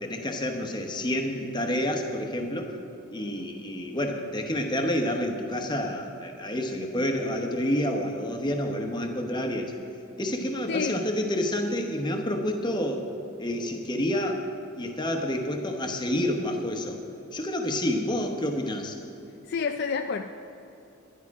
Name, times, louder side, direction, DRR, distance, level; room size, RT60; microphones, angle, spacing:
voice 1, 0.0-2.8 3.1-9.7 10.2-13.1 13.4-14.4 14.7-17.0 17.3-18.9, left 1 dB, 20° left, 3 dB, 1.0 m, -29 dB
voice 2, 10.7-11.1 19.5-20.2, left 5 dB, 50° left, 6 dB, 0.4 m, -29 dB
11.0 x 11.0 x 4.8 m, 2.9 s
head